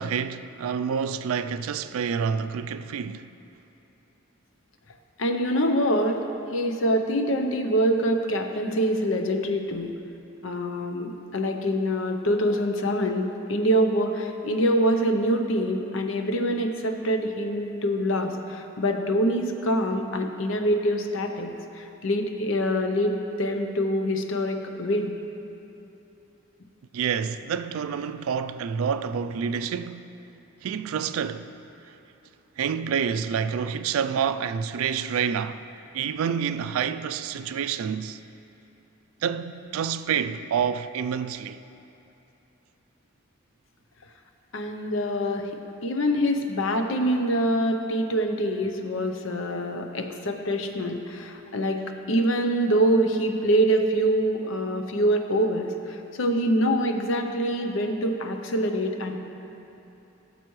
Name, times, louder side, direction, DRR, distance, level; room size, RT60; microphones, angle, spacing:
voice 1, 0.0-3.3 26.9-30.1 30.6-31.5 31.9-32.0 32.6-35.6 35.9-38.2 39.2-41.6, right 7 dB, 80° right, 0.3 m, -28 dB
voice 2, 5.2-6.2 6.5-9.9 10.4-25.1 44.5-45.5 45.8-51.8 52.1-59.2, equal, 65° left, 0.7 m, -25 dB
14.5 x 6.8 x 3.1 m
head